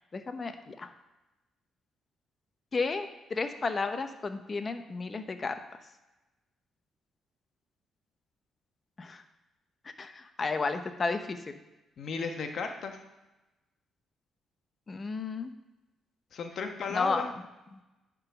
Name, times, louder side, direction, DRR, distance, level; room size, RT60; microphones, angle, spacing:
voice 1, 0.1-0.9 2.7-5.6 9.0-9.2 10.0-11.6 14.9-15.5 16.9-17.2 17.7-17.8, left 4 dB, 35° left, 8 dB, 0.8 m, -32 dB
voice 2, 12.0-13.0 16.3-17.3, left 5 dB, 60° left, 5 dB, 1.1 m, -35 dB
9.8 x 3.9 x 5.9 m, 1.0 s
cardioid pair, 90°, 0 cm